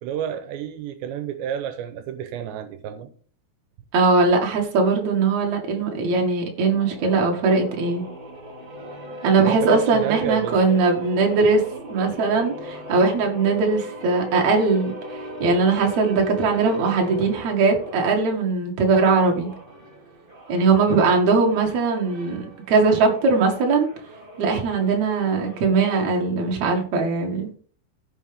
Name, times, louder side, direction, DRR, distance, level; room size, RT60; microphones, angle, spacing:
voice 1, 0.0-3.1 9.4-10.8, right 9 dB, 85° right, 3.0 m, -30 dB
voice 2, 3.9-8.0 9.2-11.6 11.9-14.9 15.4-19.5 20.5-23.9 24.4-27.6, right 4 dB, 50° right, 2.9 m, -20 dB
sound 1, 6.6-18.2 18.9-26.0, equal, 15° right, 2.1 m, -39 dB
15.0 x 6.5 x 3.6 m
omnidirectional pair, 5.0 m